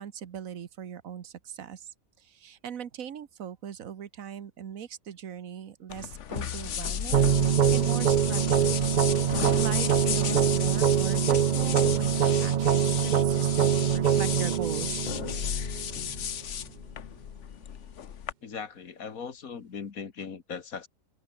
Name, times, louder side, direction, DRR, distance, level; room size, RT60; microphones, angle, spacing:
voice 1, 0.0-1.9 2.2-8.8 9.2-15.0, right 8 dB, 75° right, 1.6 m, -40 dB
sound 1, 5.9-18.3, left 9 dB, 60° left, 1.2 m, -34 dB
sound 2, 7.1-16.1, right 9 dB, 60° right, 0.5 m, -24 dB
voice 2, 18.4-20.9, left 6 dB, 80° left, 2.1 m, -39 dB
open air
omnidirectional pair, 1.4 m